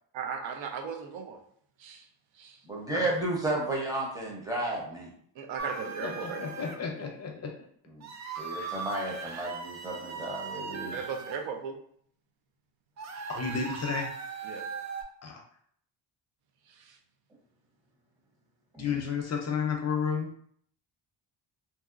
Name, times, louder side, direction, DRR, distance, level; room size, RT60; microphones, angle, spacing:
voice 1, 0.1-1.4 1.8-2.1 2.4-2.6 5.4-6.4 10.9-11.8 14.4-14.6 16.7-17.0, right 6 dB, 80° right, 4 dB, 0.7 m, -37 dB
voice 2, 2.7-5.1 8.0-8.1 8.4-10.9 18.7-19.0, right 2 dB, 10° right, -2 dB, 0.7 m, -32 dB
sound 1, 5.6-6.8 8.0-11.4 13.0-15.0, right 5 dB, 40° right, 0.4 m, -39 dB
voice 3, 6.0-7.5 8.5-8.7 13.3-14.1 15.2-15.4 18.8-20.3, left 6 dB, 35° left, 1 dB, 0.5 m, -32 dB
2.9 x 2.7 x 2.4 m, 0.63 s
cardioid pair, 125°, 45 cm